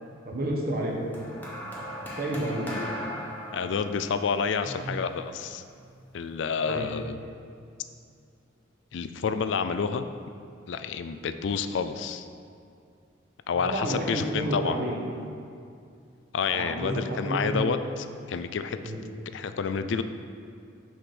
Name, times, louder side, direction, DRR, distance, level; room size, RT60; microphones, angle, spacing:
voice 1, 0.2-1.1 2.2-2.8 4.7-5.0 6.7-6.9 13.6-14.1 14.3-15.0 16.5-17.7 18.8-19.0, right 1 dB, 50° right, -2 dB, 1.3 m, -30 dB
sound 1, 1.1-5.6 6.5-6.7, equal, 10° left, 1.2 m, -38 dB
voice 2, 3.5-5.6 6.1-7.2 8.9-10.1 10.7-12.3 13.5-14.8 16.3-18.9 19.3-20.0, left 6 dB, 70° left, 10 dB, 0.4 m, -29 dB
6.1 x 5.0 x 6.1 m, 2.4 s
head